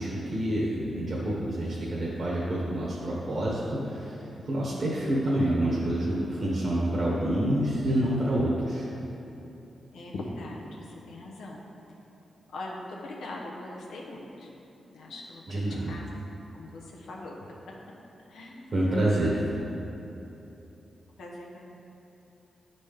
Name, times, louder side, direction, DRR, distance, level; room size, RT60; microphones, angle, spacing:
voice 1, 0.0-8.8 15.5-15.9 18.7-19.5, right 1 dB, 50° right, -7 dB, 1.2 m, -27 dB
voice 2, 9.9-11.6 12.5-14.5 14.8-17.4 18.3-18.8 21.2-21.7, left 2 dB, 90° left, -2 dB, 1.0 m, -41 dB
9.5 x 4.1 x 3.5 m, 3.0 s
cardioid pair, 80°, 0 cm